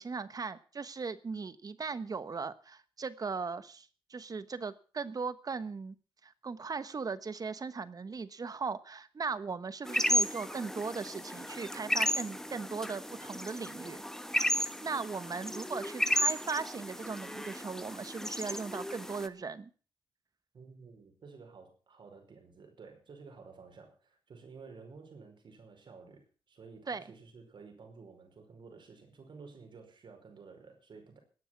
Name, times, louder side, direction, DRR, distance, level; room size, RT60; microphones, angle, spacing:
voice 1, 0.0-5.9 6.2-14.0 14.6-19.7 26.9-27.0, right 4 dB, 50° right, 14 dB, 1.2 m, -38 dB
sound 1, 9.9-19.3, equal, 5° left, 1.2 m, -34 dB
voice 2, 20.5-31.2, right 4 dB, 70° right, 4 dB, 5.3 m, -52 dB
17.5 x 10.0 x 6.0 m, 0.39 s
cardioid pair, 85°, 8 cm